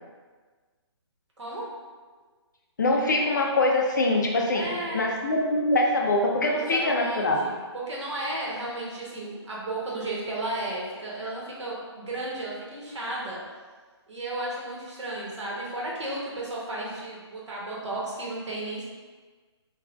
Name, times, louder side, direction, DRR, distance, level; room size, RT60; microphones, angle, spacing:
voice 1, 2.8-4.7 4.9-7.5, left 2 dB, 40° left, -1 dB, 0.4 m, -23 dB
voice 2, 4.5-5.0 6.6-13.4 14.1-18.9, right 2 dB, 80° right, -5 dB, 1.0 m, -34 dB
3.4 x 2.3 x 2.4 m, 1.4 s
hypercardioid pair, 175°, 15 cm